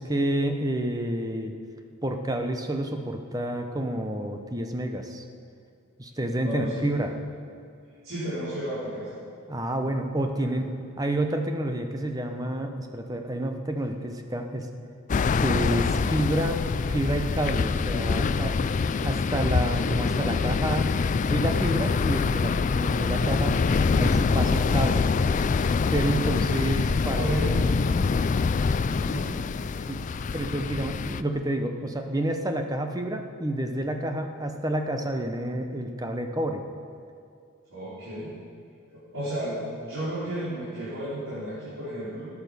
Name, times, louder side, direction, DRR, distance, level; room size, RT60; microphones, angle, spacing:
voice 1, 0.0-1.5 2.0-5.2 6.0-7.1 9.5-10.7 11.0-14.7 15.4-16.6 16.9-18.6 19.0-21.0 21.2-23.6 23.9-25.0 25.9-27.3 29.9-30.0 30.3-36.6, right 1 dB, 15° right, 5 dB, 0.9 m, -29 dB
voice 2, 6.4-6.8 8.0-9.2 10.4-10.5 27.1-28.0 29.0-29.3 30.0-30.2 37.7-38.3 39.1-42.3, right 1 dB, 70° right, -11 dB, 4.2 m, -32 dB
sound 1, 15.1-31.2, left 4 dB, 35° left, 0.3 m, -25 dB
13.5 x 9.8 x 6.9 m, 2.3 s
head